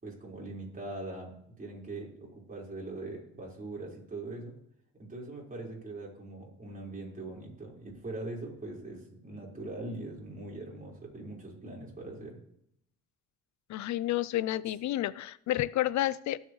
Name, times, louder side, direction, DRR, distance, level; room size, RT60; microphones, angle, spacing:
voice 1, 0.0-4.6 4.9-12.4, right 2 dB, 25° right, -3 dB, 4.6 m, -42 dB
voice 2, 13.7-16.4, left 14 dB, 70° left, 19 dB, 0.5 m, -30 dB
20.0 x 7.3 x 3.2 m, 0.74 s
cardioid pair, 90°, 30 cm